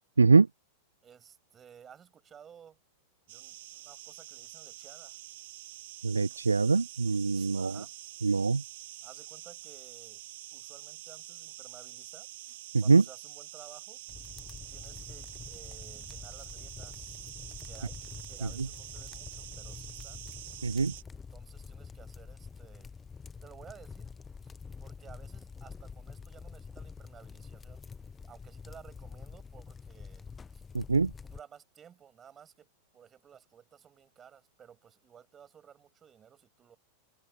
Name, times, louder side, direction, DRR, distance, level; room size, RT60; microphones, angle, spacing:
voice 1, 1.0-2.8 3.3-5.2 7.3-7.9 9.0-10.2 10.5-12.3 12.8-14.0 14.7-17.3 17.6-18.0 18.3-20.2 21.1-22.9 23.4-24.1 24.8-27.8 28.2-30.3 30.5-30.6 31.2-32.7 32.9-36.8, right 8 dB, 25° right, 5.4 m, -55 dB
sound 1, 3.3-21.0, right 16 dB, 55° right, 2.3 m, -46 dB
voice 2, 6.0-7.8 8.2-8.6 12.9-13.0 20.6-20.9 30.7-31.1, right 4 dB, 80° right, 0.4 m, -23 dB
sound 2, 14.1-31.4, left 5 dB, 15° left, 0.9 m, -47 dB
figure-of-eight pair, 90°, 0 cm